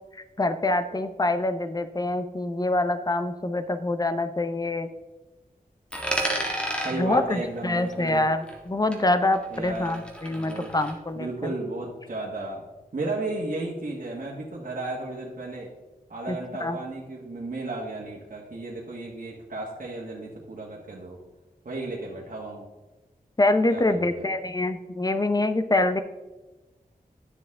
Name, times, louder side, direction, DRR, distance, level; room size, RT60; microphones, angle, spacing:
voice 1, 0.4-4.9 7.0-11.5 16.3-16.8 23.4-26.0, left 2 dB, 25° left, 9 dB, 0.7 m, -25 dB
Coin (dropping), 5.9-8.7 8.9-10.9, right 1 dB, 5° left, 1.7 m, -33 dB
voice 2, 6.8-8.3 9.5-10.7 11.1-12.6 12.9-15.7 16.1-21.2 21.6-22.7 23.7-24.3, right 2 dB, 65° right, -4 dB, 1.5 m, -34 dB
10.5 x 6.6 x 3.6 m, 1.1 s
wide cardioid pair, 85°, 15 cm